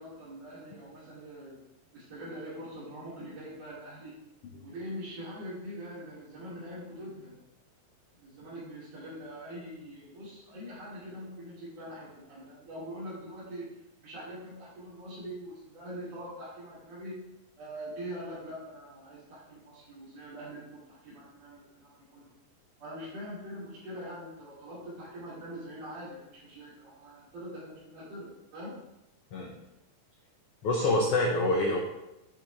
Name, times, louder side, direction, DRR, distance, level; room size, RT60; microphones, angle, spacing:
voice 1, 0.0-1.6 1.9-4.1 4.6-7.3 8.1-13.7 14.0-17.2 17.6-22.3 22.8-28.7, equal, 45° right, -10 dB, 4.3 m, -43 dB
voice 2, 30.6-31.8, left 2 dB, 90° left, -1 dB, 1.3 m, -26 dB
9.8 x 6.4 x 3.5 m, 0.89 s
omnidirectional pair, 4.1 m